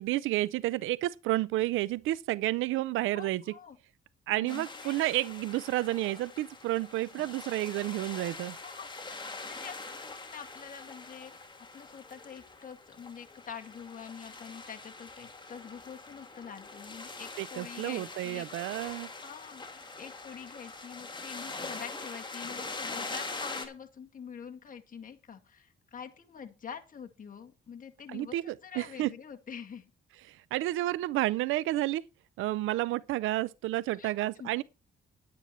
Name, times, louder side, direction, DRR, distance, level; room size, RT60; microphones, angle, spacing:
voice 1, 0.0-3.4 4.3-8.6 17.4-19.1 28.1-29.1 30.3-32.0 32.4-34.6, right 16 dB, 85° right, 0.5 m, -31 dB
voice 2, 3.1-3.8 4.3-5.0 8.6-11.3 11.7-18.7 19.1-29.9 33.9-34.5, left 7 dB, 45° left, 2.1 m, -46 dB
sound 1, 4.5-23.7, left 3 dB, 25° left, 2.7 m, -43 dB
10.5 x 9.4 x 4.3 m
cardioid pair, 90°, 20 cm